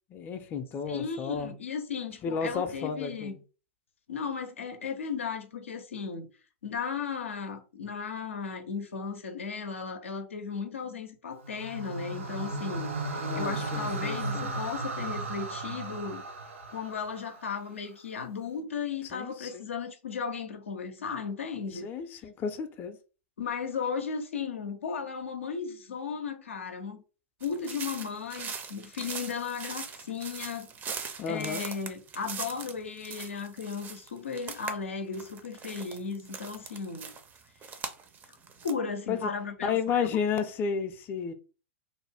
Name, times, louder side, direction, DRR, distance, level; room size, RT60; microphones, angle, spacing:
voice 1, 0.1-1.5 2.2-3.4 13.2-14.5 19.1-19.7 21.7-23.0 31.2-31.6 39.1-39.3 39.6-41.3, left 6 dB, 30° left, 0.4 m, -32 dB
voice 2, 0.9-3.3 4.1-6.3 6.6-16.3 16.7-21.9 23.4-27.0 27.4-30.7 31.3-37.1 38.6-40.2, left 5 dB, 85° left, 0.5 m, -35 dB
sound 1, 11.4-17.7, right 2 dB, 80° right, 0.5 m, -35 dB
sound 2, 27.4-34.7 35.0-38.7, right 6 dB, 25° right, 0.5 m, -41 dB
2.5 x 2.1 x 3.4 m
hypercardioid pair, 105°, 7 cm